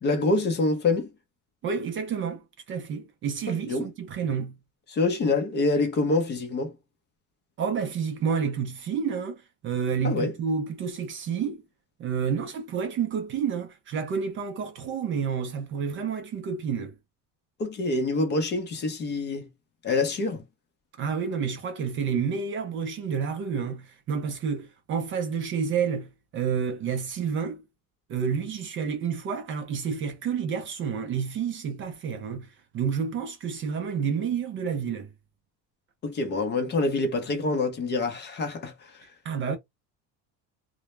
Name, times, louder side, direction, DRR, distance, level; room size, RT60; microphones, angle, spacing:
voice 1, 0.0-1.1 3.5-3.9 4.9-6.7 10.0-10.3 17.6-19.5 19.8-20.4 36.0-39.1, left 3 dB, 30° left, 0.6 m, -26 dB
voice 2, 1.6-4.6 7.6-11.6 12.0-16.9 21.0-27.6 28.1-35.1 39.2-39.6, right 6 dB, 35° right, 0.4 m, -29 dB
2.1 x 2.0 x 3.0 m
cardioid pair, 145°, 37 cm